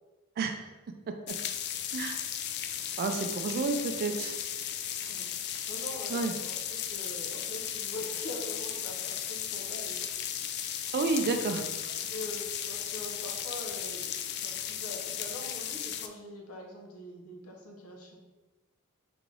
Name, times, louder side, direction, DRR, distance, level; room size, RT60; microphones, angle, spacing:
sound 1, 1.3-16.1, left 9 dB, 50° left, 0.3 m, -36 dB
voice 1, 3.0-4.4 6.1-6.3 10.9-11.6, right 4 dB, 45° right, 5 dB, 0.3 m, -30 dB
voice 2, 5.1-10.1 11.9-18.2, left 1 dB, 70° left, 0 dB, 0.8 m, -44 dB
3.5 x 3.3 x 3.7 m, 1.2 s
head